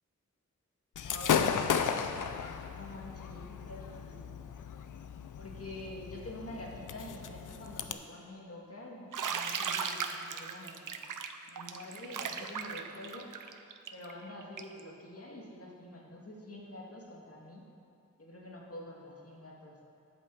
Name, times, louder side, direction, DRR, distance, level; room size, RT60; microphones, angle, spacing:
Gunshot gunfire / Fireworks, 1.0-7.9, left 7 dB, 80° left, 0.5 m, -35 dB
voice 1, 1.0-1.6 2.7-4.3 5.4-10.9 11.5-13.3 13.9-17.6 18.2-19.8, left 1 dB, 50° left, -2 dB, 1.9 m, -46 dB
Bathtub (filling or washing), 9.1-14.8, right 6 dB, 85° right, 0.6 m, -37 dB
8.4 x 5.3 x 7.1 m, 2.5 s
cardioid pair, 45°, 31 cm